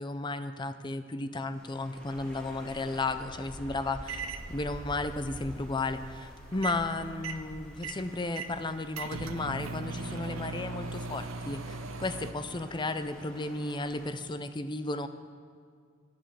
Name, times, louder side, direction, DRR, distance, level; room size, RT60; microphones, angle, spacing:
voice 1, 0.0-4.2 4.5-15.1, left 2 dB, 20° left, 11 dB, 0.5 m, -34 dB
sound 1, 1.5-14.1, equal, 5° left, 1.7 m, -48 dB
sound 2, 4.1-4.5 6.5-6.9 7.2-12.3, right 3 dB, 75° right, 0.7 m, -39 dB
11.5 x 10.5 x 6.9 m, 2.1 s
head